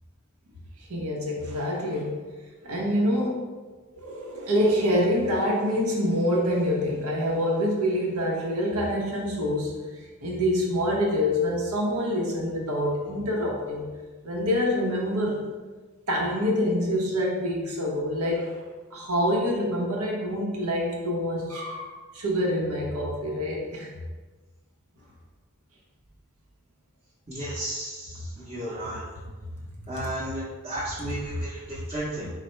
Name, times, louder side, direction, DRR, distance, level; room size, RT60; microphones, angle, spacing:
voice 1, 0.8-2.2 2.6-3.5 3.9-13.9 14.2-15.4 16.1-18.6 18.9-23.9, equal, 80° right, -2 dB, 0.8 m, -26 dB
voice 2, 27.3-29.0 29.9-32.3, right 1 dB, 25° right, -10 dB, 0.8 m, -34 dB
4.1 x 2.1 x 4.3 m, 1.3 s
head